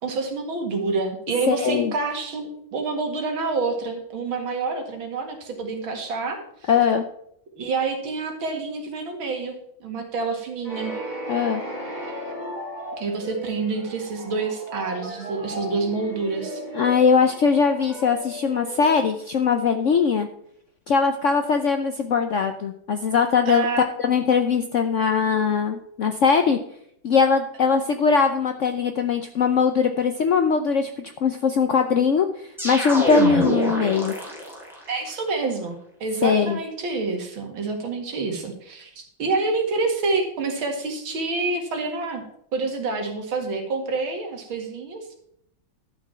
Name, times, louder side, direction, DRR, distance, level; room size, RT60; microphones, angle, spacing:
voice 1, 0.0-6.7 7.6-9.6 9.8-10.9 12.9-16.6 23.5-23.9 34.9-42.2 42.5-45.1, right 3 dB, 80° right, 4 dB, 2.6 m, -27 dB
voice 2, 1.5-1.9 6.7-7.0 11.3-11.6 16.7-20.3 20.9-26.6 27.0-34.1 36.2-36.6, left 5 dB, 85° left, 7 dB, 0.6 m, -21 dB
sound 1, 10.6-19.4, equal, 20° right, 3.1 m, -36 dB
sound 2, 32.6-34.8, right 1 dB, ahead, 2.9 m, -25 dB
12.0 x 6.1 x 5.6 m, 0.70 s
omnidirectional pair, 2.2 m